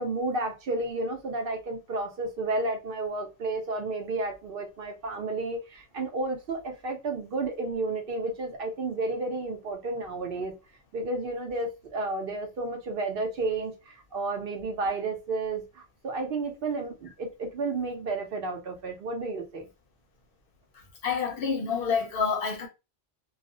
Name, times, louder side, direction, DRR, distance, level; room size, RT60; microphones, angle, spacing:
voice 1, 0.0-10.5 10.9-19.7, right 3 dB, 65° right, 0.7 m, -32 dB
voice 2, 21.0-22.7, left 5 dB, 65° left, 0.7 m, -28 dB
2.3 x 2.0 x 2.6 m
omnidirectional pair, 1.1 m